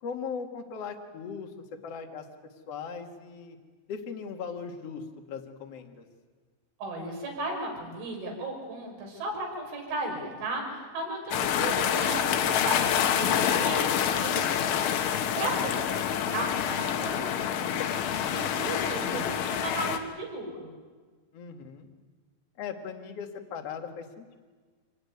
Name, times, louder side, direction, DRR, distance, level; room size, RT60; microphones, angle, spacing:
voice 1, 0.0-1.5 1.8-2.3 2.7-3.6 3.9-5.0 5.3-6.0 15.5-15.7 21.3-21.9 22.6-24.4, left 6 dB, 50° left, 4 dB, 2.0 m, -38 dB
voice 2, 6.8-15.7 16.1-20.7, right 2 dB, 75° right, 0 dB, 8.3 m, -36 dB
sound 1, 11.3-20.0, left 9 dB, 75° left, 3.7 m, -27 dB
26.5 x 19.5 x 9.6 m, 1.5 s
omnidirectional pair, 5.6 m